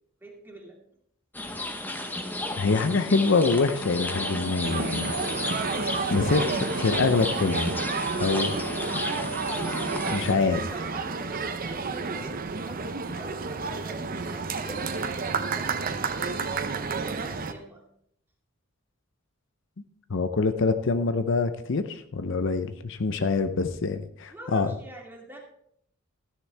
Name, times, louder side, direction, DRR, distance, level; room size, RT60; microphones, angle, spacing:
voice 1, 0.2-0.8 5.4-5.8 8.8-9.1 10.5-12.4 12.6-14.8 15.4-17.8 24.3-25.4, right 2 dB, 10° right, -1 dB, 2.3 m, -44 dB
sound 1, 1.3-10.3, left 1 dB, 10° left, 0.9 m, -33 dB
voice 2, 2.6-5.1 6.1-7.7 8.2-8.6 10.1-10.6 20.1-24.7, left 4 dB, 60° left, 10 dB, 0.6 m, -25 dB
Wind instrument woodwind instrument, 4.1-10.8, right 2 dB, 70° right, 0.9 m, -38 dB
sound 2, 4.6-17.5, right 4 dB, 45° right, 0.7 m, -31 dB
13.5 x 9.9 x 3.4 m, 0.69 s
head